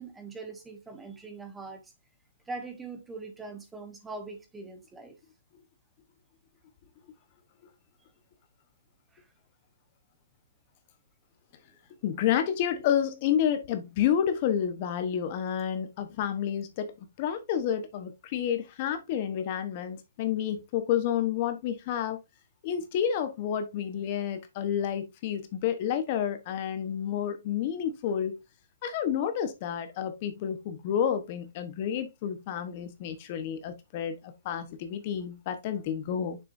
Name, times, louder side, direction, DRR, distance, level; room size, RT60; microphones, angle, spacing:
voice 1, 0.0-1.9 2.5-5.1 9.1-9.3, right 3 dB, 5° right, 1.2 m, -42 dB
voice 2, 12.0-22.2 22.6-28.4 28.8-36.4, left 9 dB, 35° left, 1.1 m, -30 dB
6.8 x 6.2 x 2.6 m
hypercardioid pair, 160°, 0 cm